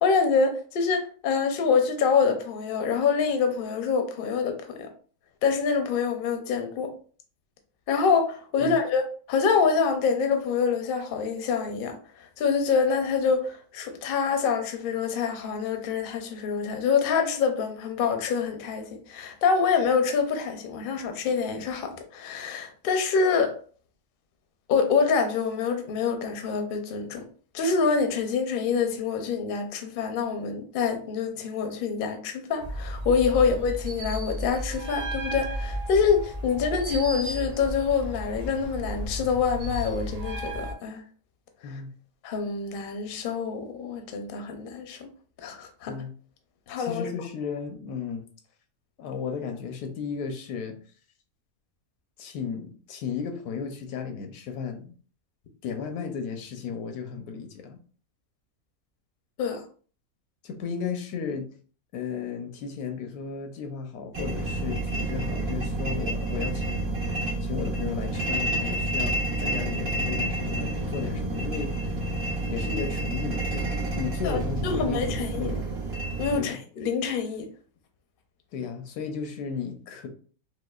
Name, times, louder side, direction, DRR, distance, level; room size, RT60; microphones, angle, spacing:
voice 1, 0.0-4.9 5.4-6.9 7.9-12.0 12.4-23.6 24.7-27.2 27.5-41.0 42.2-45.1 45.4-45.9 46.7-47.1 59.4-59.6 74.2-74.4 74.6-75.5 76.2-77.4, left 5 dB, 60° left, 0.6 m, -26 dB
sound 1, 32.6-40.7, equal, 55° right, 0.4 m, -34 dB
voice 2, 46.8-48.3 49.0-50.8 52.2-54.9 55.6-57.8 60.4-61.5 61.9-67.0 67.4-71.7 72.5-75.7 76.4-76.6 78.5-80.1, left 6 dB, 90° left, 1.2 m, -34 dB
sound 2, 64.1-76.4, right 1 dB, 75° right, 1.7 m, -29 dB
4.9 x 2.1 x 2.3 m
omnidirectional pair, 1.5 m